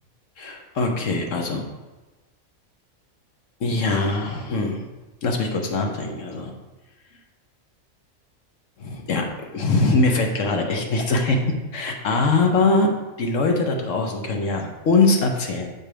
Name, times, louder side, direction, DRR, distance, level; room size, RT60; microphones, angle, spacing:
voice 1, 0.4-1.6 3.6-4.9 5.2-6.5 8.8-11.4 11.7-12.9 13.2-15.7, left 3 dB, 65° left, 2 dB, 1.2 m, -22 dB
6.8 x 4.3 x 5.0 m, 1.2 s
omnidirectional pair, 1.4 m